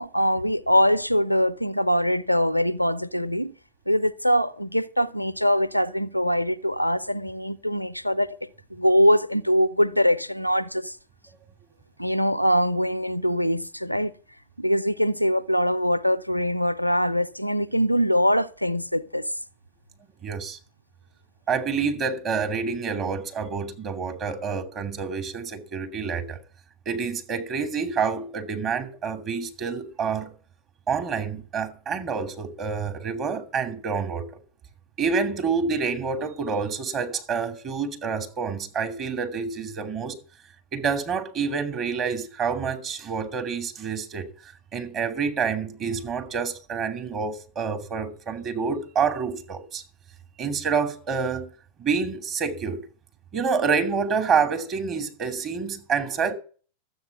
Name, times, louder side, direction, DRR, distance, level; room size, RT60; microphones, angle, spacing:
voice 1, 0.0-3.5 3.9-8.4 8.7-11.0 12.0-14.1 14.6-19.2, equal, 90° left, 0.6 m, -23 dB
voice 2, 20.2-20.6 21.5-26.4 26.9-30.3 30.9-34.3 35.0-40.1 40.7-44.3 44.7-49.8 50.4-51.5 51.8-52.8 53.3-56.3, right 5 dB, 30° right, 2.6 m, -27 dB
13.0 x 8.2 x 7.1 m
figure-of-eight pair, 90°, 0 cm